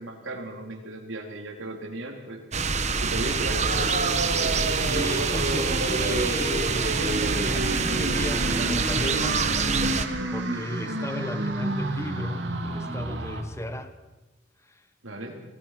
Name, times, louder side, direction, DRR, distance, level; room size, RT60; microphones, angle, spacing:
voice 1, 0.0-2.7 3.0-4.2 15.0-15.3, right 2 dB, 85° right, 2 dB, 4.0 m, -36 dB
sound 1, 2.5-10.1, right 4 dB, 35° right, 1.3 m, -26 dB
sound 2, 3.7-13.4, right 2 dB, 65° right, 2.5 m, -30 dB
voice 2, 4.8-10.0 10.3-14.0 14.6-14.9, left 1 dB, 15° left, 9 dB, 1.4 m, -35 dB
25.0 x 18.0 x 6.1 m, 1.1 s
head